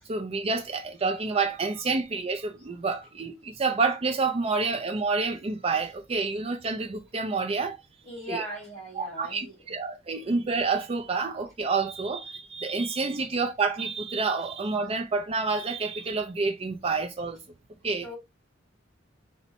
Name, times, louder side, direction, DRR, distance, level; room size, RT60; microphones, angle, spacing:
voice 1, 0.1-7.8 8.3-8.4 9.0-17.4 17.8-18.1, right 4 dB, 30° right, 0.4 m, -28 dB
voice 2, 8.0-9.6 10.1-10.2 13.1-13.2 18.0-18.2, right 1 dB, 5° left, 2.3 m, -39 dB
4.4 x 2.1 x 4.0 m
head